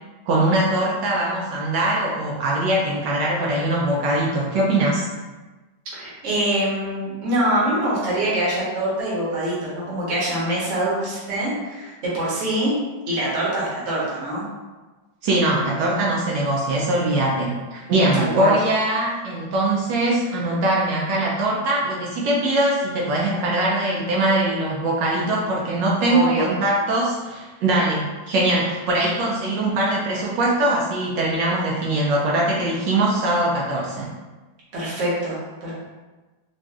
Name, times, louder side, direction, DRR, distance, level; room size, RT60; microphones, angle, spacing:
voice 1, 0.3-5.1 15.2-34.1, right 1 dB, 80° right, -4 dB, 1.2 m, -22 dB
voice 2, 5.9-12.7 13.1-14.4 18.1-18.5 26.1-26.5 34.7-35.7, right 1 dB, 50° right, -6 dB, 1.1 m, -24 dB
4.0 x 2.4 x 2.3 m, 1.2 s
omnidirectional pair, 2.0 m